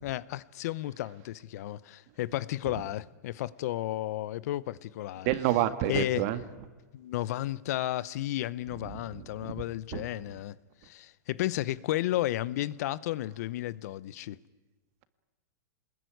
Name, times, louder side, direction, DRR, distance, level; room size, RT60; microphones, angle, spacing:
voice 1, 0.0-5.3 5.9-6.2 6.9-10.6 10.8-14.4, left 14 dB, 55° left, 0.8 m, -33 dB
voice 2, 5.3-6.4 9.1-9.6 9.9-10.1, right 13 dB, 45° right, 1.9 m, -29 dB
26.5 x 21.0 x 9.4 m
supercardioid pair, 150°, 10 cm